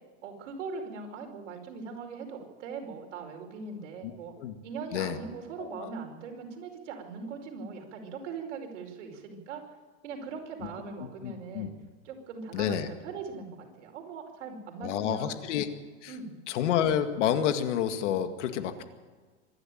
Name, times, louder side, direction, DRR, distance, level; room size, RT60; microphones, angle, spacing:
voice 1, 0.2-4.3 4.6-9.6 10.0-11.7 12.0-15.5 16.1-16.4, right 4 dB, 80° right, 2 dB, 5.2 m, -40 dB
voice 2, 5.6-5.9 11.2-11.7 12.5-12.9 14.8-15.7 16.0-16.1 16.5-18.8, left 9 dB, 75° left, 8 dB, 2.1 m, -29 dB
24.5 x 11.5 x 9.3 m, 1.4 s
supercardioid pair, 160°, 36 cm